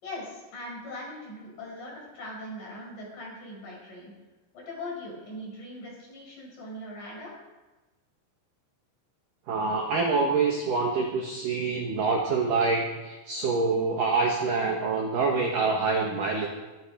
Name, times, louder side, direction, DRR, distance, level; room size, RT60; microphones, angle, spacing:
voice 1, 0.0-4.1 4.5-7.3, left 1 dB, 40° left, -2 dB, 6.1 m, -40 dB
voice 2, 9.5-16.5, right 4 dB, 60° right, 0 dB, 2.4 m, -26 dB
23.5 x 12.0 x 5.2 m, 1.2 s
omnidirectional pair, 6.0 m